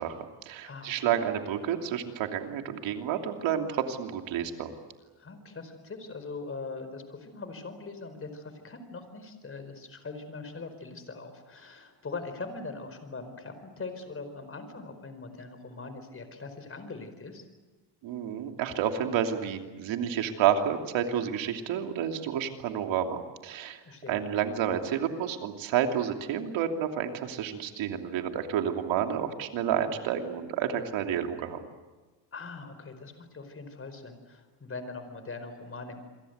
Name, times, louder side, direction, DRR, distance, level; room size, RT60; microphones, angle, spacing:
voice 1, 0.0-4.7 18.0-23.8 24.1-31.6, right 9 dB, 80° right, 4 dB, 3.0 m, -30 dB
voice 2, 0.6-1.2 5.2-17.5 23.8-24.2 32.3-36.0, left 3 dB, 30° left, 9 dB, 4.8 m, -41 dB
28.5 x 23.0 x 8.1 m, 1.3 s
cardioid pair, 110°, 45 cm